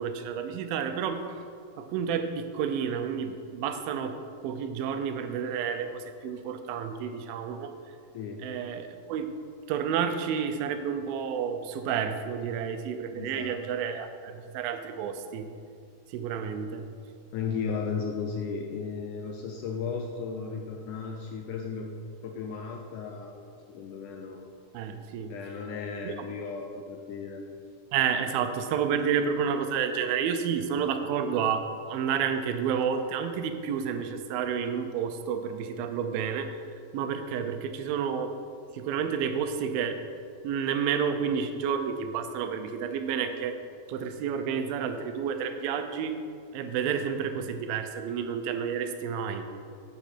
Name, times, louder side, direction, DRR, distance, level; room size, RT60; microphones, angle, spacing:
voice 1, 0.0-1.4 1.8-4.2 4.4-7.7 8.4-9.3 9.7-15.5 16.1-16.9 24.7-25.3 26.1-26.2 27.9-36.6 36.9-38.3 38.7-40.0 40.4-43.6 43.9-46.2 46.5-49.5, right 7 dB, 85° right, 8 dB, 2.4 m, -30 dB
voice 2, 8.1-8.5 13.1-13.6 17.3-21.9 22.2-23.4 23.7-24.4 25.3-27.4, left 5 dB, 80° left, 2 dB, 1.8 m, -35 dB
9.0 x 7.9 x 4.3 m, 2.3 s
omnidirectional pair, 4.2 m